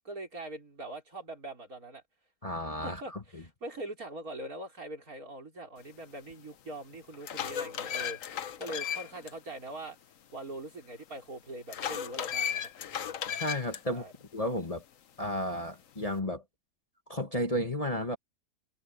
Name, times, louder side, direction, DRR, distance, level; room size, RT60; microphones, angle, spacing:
voice 1, 0.1-2.0 2.8-10.0 10.3-12.7 13.9-14.1, right 1 dB, 65° right, 5.3 m, -42 dB
voice 2, 2.4-3.4 13.3-14.0 14.3-14.8 15.2-16.4 17.1-18.2, equal, 25° left, 1.6 m, -33 dB
sound 1, 6.3-6.4 6.9-9.3 9.7-9.8 11.7-13.8, left 9 dB, 60° left, 1.2 m, -35 dB
omnidirectional pair, 1.6 m